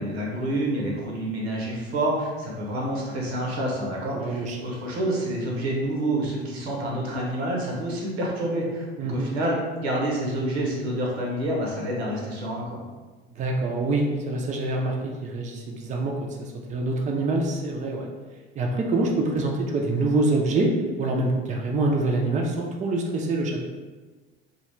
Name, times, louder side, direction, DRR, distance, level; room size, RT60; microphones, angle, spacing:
voice 1, 0.0-12.8, right 1 dB, 80° right, -3 dB, 0.7 m, -28 dB
voice 2, 4.1-4.6 9.0-9.3 13.4-18.1 18.6-20.7 21.0-23.6, right 2 dB, 25° right, 0 dB, 0.5 m, -25 dB
2.3 x 2.2 x 3.1 m, 1.3 s
hypercardioid pair, 65°, 31 cm